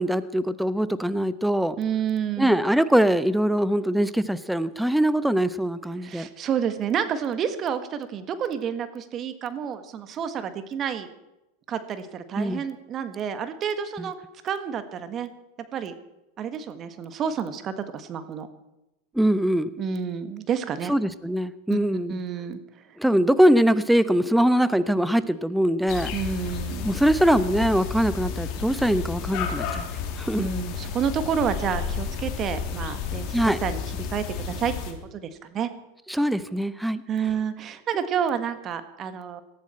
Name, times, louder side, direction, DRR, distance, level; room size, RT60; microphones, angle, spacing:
voice 1, 0.0-1.8 2.4-6.3 12.4-12.6 14.0-14.1 19.1-19.7 20.9-22.2 23.0-26.1 26.8-29.9 30.2-30.5 33.3-33.6 36.1-37.0, equal, ahead, 14 dB, 0.9 m, -22 dB
voice 2, 1.8-2.5 6.0-11.1 11.7-14.2 14.4-15.3 15.7-15.9 16.4-18.5 19.8-20.9 21.7-21.8 22.1-23.0 26.1-26.9 30.4-33.8 34.1-35.7 37.1-39.4, right 7 dB, 40° right, 10 dB, 1.6 m, -29 dB
sound 1, 25.9-34.9, left 6 dB, 55° left, 3.0 m, -32 dB
18.5 x 14.0 x 4.4 m, 0.95 s
hypercardioid pair, 95°, 0 cm